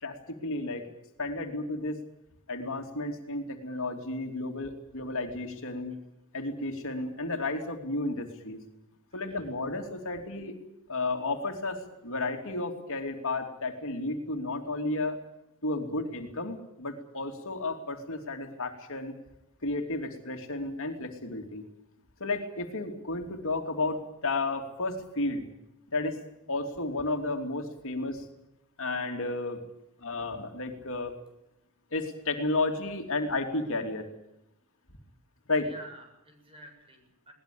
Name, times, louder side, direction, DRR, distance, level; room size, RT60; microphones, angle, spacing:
voice 1, 0.0-0.9 1.2-2.0 2.5-6.0 6.3-8.6 9.1-10.5 10.9-15.2 15.6-19.1 19.6-21.6 22.2-25.4 25.9-26.2 26.5-28.3 28.8-29.6 30.0-31.1 31.9-34.1 35.5-35.7, left 2 dB, 65° left, 4 dB, 3.0 m, -32 dB
voice 2, 9.1-9.4 35.6-37.3, right 1 dB, 25° right, 4 dB, 7.6 m, -50 dB
22.0 x 19.0 x 8.6 m, 0.84 s
head